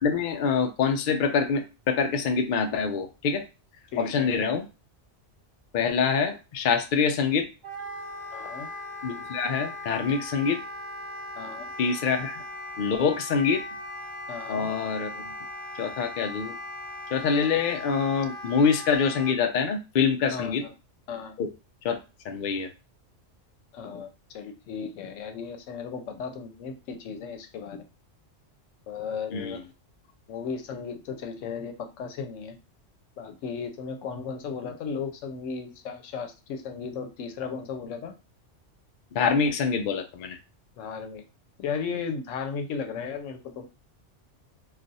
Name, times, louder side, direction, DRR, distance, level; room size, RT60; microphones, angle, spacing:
voice 1, 0.0-3.4 4.0-4.7 5.7-7.5 9.0-10.6 11.8-12.4 12.8-13.6 14.5-15.3 15.8-16.6 17.1-20.6 21.4-21.5 21.8-22.0 22.2-22.7 29.3-29.6 39.1-40.4, left 5 dB, 55° left, 5 dB, 0.6 m, -25 dB
voice 2, 3.9-4.3 8.3-8.7 11.4-11.7 14.3-14.7 20.3-20.7 21.1-21.4 23.7-27.8 28.9-29.6 30.3-32.6 33.2-38.1 40.8-41.2 41.6-43.7, left 6 dB, 85° left, 6 dB, 1.0 m, -35 dB
Wind instrument woodwind instrument, 7.6-19.4, left 1 dB, 40° right, 1.0 m, -39 dB
2.4 x 2.4 x 4.0 m, 0.30 s
omnidirectional pair, 1.2 m